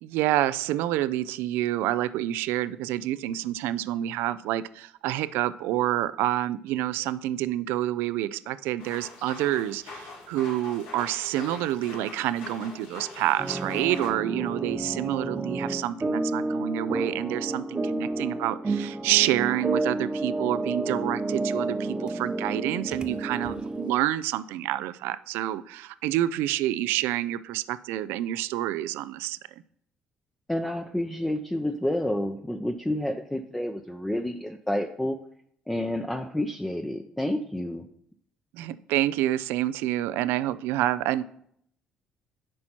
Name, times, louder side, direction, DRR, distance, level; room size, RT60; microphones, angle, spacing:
voice 1, 0.0-29.4 38.5-41.2, right 14 dB, 80° right, 15 dB, 0.4 m, -28 dB
sound 1, 8.8-14.1, left 3 dB, 80° left, 1.8 m, -43 dB
sound 2, 13.4-23.9, right 2 dB, 25° right, 0.9 m, -30 dB
voice 2, 30.5-35.2 35.7-37.9, left 1 dB, 10° left, 4 dB, 0.7 m, -29 dB
10.5 x 4.3 x 4.4 m, 0.66 s
supercardioid pair, 65°, 4 cm